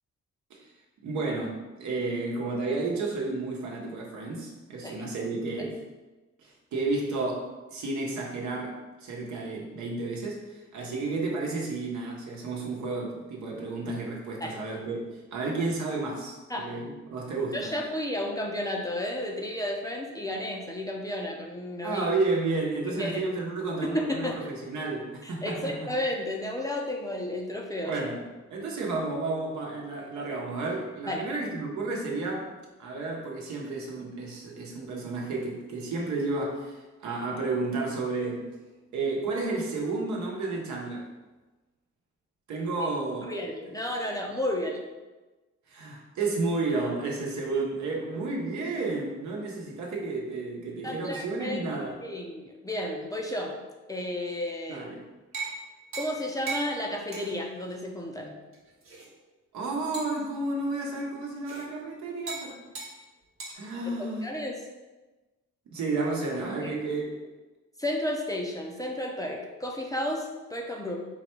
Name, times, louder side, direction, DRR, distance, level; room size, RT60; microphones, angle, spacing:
voice 1, 1.0-5.8 6.4-17.7 21.8-25.9 27.8-28.2 28.5-32.5 32.8-38.5 38.9-41.1 42.5-43.3 45.7-52.0 54.7-55.0 59.5-62.6 63.5-64.3 65.7-67.3, right 3 dB, 70° right, -1 dB, 1.0 m, -32 dB
voice 2, 17.5-22.1 22.9-23.2 23.8-24.4 25.2-28.0 31.1-31.3 43.2-44.8 50.8-51.6 52.0-53.5 53.9-54.8 56.0-58.4 63.9-64.6 66.6-66.8 67.8-71.0, left 1 dB, 10° left, -1 dB, 0.5 m, -32 dB
sound 1, 55.3-55.6 55.9-56.2 56.5-56.7 57.1-57.4 57.7-57.8 58.5-59.1 59.9-60.2 61.4-61.6 62.3-62.5 62.7-62.9 63.4-63.5, right 4 dB, 45° right, 1.1 m, -37 dB
4.0 x 2.2 x 4.4 m, 1.2 s
cardioid pair, 90°, 30 cm